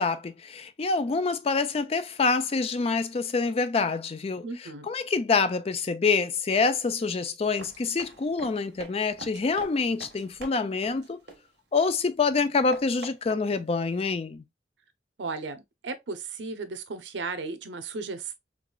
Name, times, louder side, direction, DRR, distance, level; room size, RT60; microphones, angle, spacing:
voice 1, 0.0-11.2 11.7-14.4, left 4 dB, 35° left, 0.4 m, -26 dB
voice 2, 4.4-4.9 15.2-18.4, right 4 dB, 90° right, 0.7 m, -35 dB
Run, 7.4-11.9 12.2-14.1, right 2 dB, 70° right, 1.3 m, -46 dB
4.7 x 2.4 x 2.3 m
head